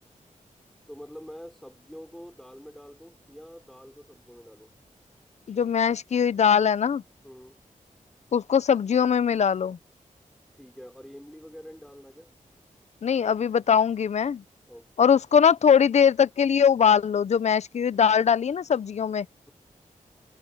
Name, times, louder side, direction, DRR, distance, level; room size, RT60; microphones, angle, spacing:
voice 1, 0.9-4.7 7.2-7.6 10.5-12.3 14.7-15.1, equal, 5° left, 4.8 m, -46 dB
voice 2, 5.5-7.0 8.3-9.8 13.0-14.4 15.0-19.3, left 7 dB, 60° left, 0.5 m, -21 dB
wide cardioid pair, 170°, 13 cm